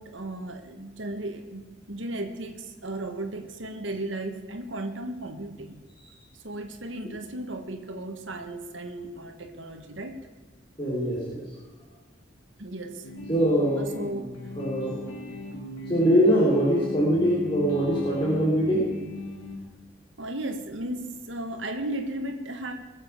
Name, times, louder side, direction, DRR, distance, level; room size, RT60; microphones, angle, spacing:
voice 1, 0.0-5.8 6.4-10.2 12.6-13.0 13.8-14.5 20.2-22.7, right 1 dB, 80° right, 5 dB, 1.5 m, -35 dB
voice 2, 10.8-11.4 13.3-13.9 14.6-14.9 15.9-18.9, equal, 25° left, -7 dB, 3.8 m, -22 dB
sound 1, 13.0-19.6, left 2 dB, 85° left, 2.6 m, -37 dB
21.0 x 7.5 x 7.2 m, 1.3 s
head